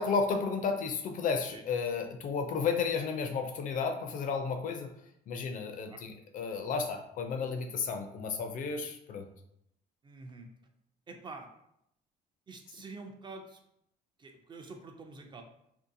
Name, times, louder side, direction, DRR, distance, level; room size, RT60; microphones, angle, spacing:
voice 1, 0.0-4.9 5.3-9.3, left 5 dB, 50° left, 5 dB, 0.4 m, -32 dB
voice 2, 10.0-10.5 11.1-11.5 12.5-13.6 14.2-15.4, right 3 dB, 25° right, 4 dB, 0.4 m, -47 dB
2.7 x 2.2 x 2.6 m, 0.76 s
cardioid pair, 110°, 17 cm